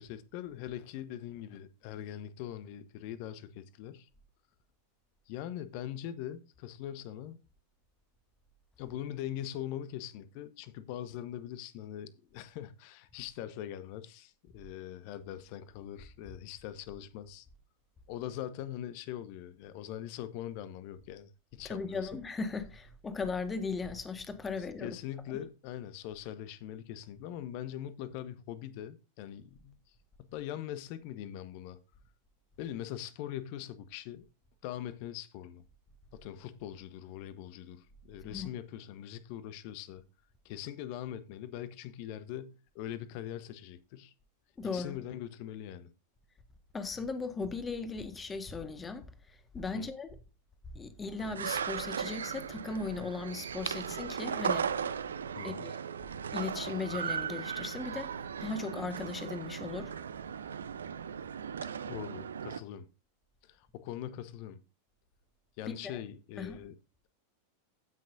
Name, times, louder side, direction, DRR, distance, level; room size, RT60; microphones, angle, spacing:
voice 1, 0.0-4.1 5.3-7.4 8.8-17.5 18.1-22.1 24.8-29.7 30.2-31.8 32.6-34.2 34.6-35.6 36.1-40.0 40.4-44.1 44.6-45.9 49.7-49.9 55.4-55.7 61.8-62.9 63.4-64.6 65.6-66.7, left 11 dB, 45° left, 1.0 m, -42 dB
voice 2, 21.6-25.0 38.2-38.5 44.6-45.0 46.7-50.2 50.7-54.7 55.4-55.7 56.3-58.1 58.4-59.9 65.7-66.0 66.4-66.6, left 4 dB, 15° left, 1.4 m, -37 dB
sound 1, 51.2-62.6, right 7 dB, 70° right, 0.6 m, -37 dB
16.0 x 6.2 x 2.6 m
figure-of-eight pair, 90°, 0 cm